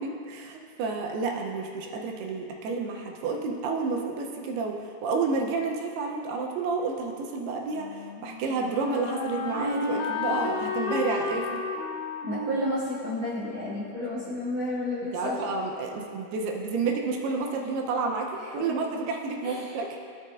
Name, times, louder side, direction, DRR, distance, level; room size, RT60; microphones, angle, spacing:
voice 1, 0.0-7.9 8.2-11.6 15.1-20.0, right 4 dB, 80° right, 1 dB, 2.6 m, -30 dB
Wind instrument woodwind instrument, 7.7-14.6, left 4 dB, 80° left, 1.8 m, -33 dB
voice 2, 12.2-15.4 18.4-18.5 19.4-19.7, left 1 dB, 45° right, -10 dB, 2.6 m, -31 dB
16.5 x 6.5 x 2.5 m, 2.3 s
omnidirectional pair, 4.8 m